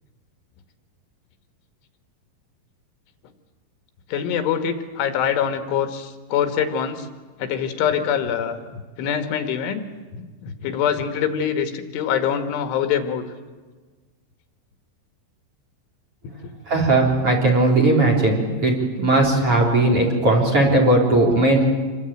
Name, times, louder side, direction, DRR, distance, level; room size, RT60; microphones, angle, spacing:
voice 1, 4.1-7.1 7.4-9.9 10.1-13.3, left 8 dB, 75° left, 7 dB, 3.9 m, -24 dB
voice 2, 16.7-21.7, right 2 dB, 30° right, 2 dB, 4.2 m, -18 dB
27.0 x 23.0 x 8.9 m, 1.3 s
omnidirectional pair, 5.6 m